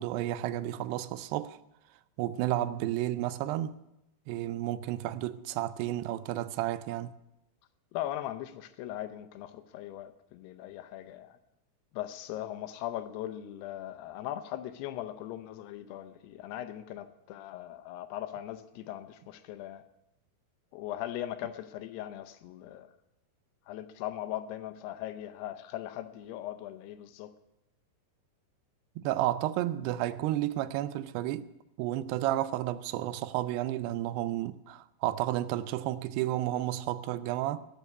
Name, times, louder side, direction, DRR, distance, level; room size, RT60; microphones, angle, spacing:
voice 1, 0.0-1.6 2.2-3.8 4.3-7.1 29.0-31.5 31.8-37.6, right 14 dB, 85° right, 2.7 m, -32 dB
voice 2, 7.9-11.4 11.9-19.8 20.7-22.9 23.7-27.3, left 12 dB, 80° left, 2.8 m, -39 dB
12.0 x 8.4 x 9.5 m
omnidirectional pair, 4.7 m